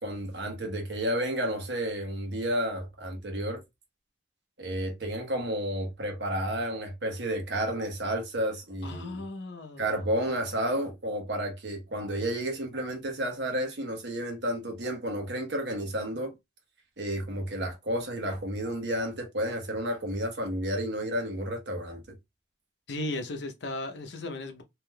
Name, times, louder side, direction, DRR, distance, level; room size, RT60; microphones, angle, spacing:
voice 1, 0.0-3.6 4.6-9.2 9.8-16.3 17.0-22.0, right 1 dB, 70° right, 1.0 m, -31 dB
voice 2, 8.8-10.1 22.9-24.6, left 2 dB, 70° left, 0.6 m, -36 dB
3.4 x 2.7 x 2.2 m
head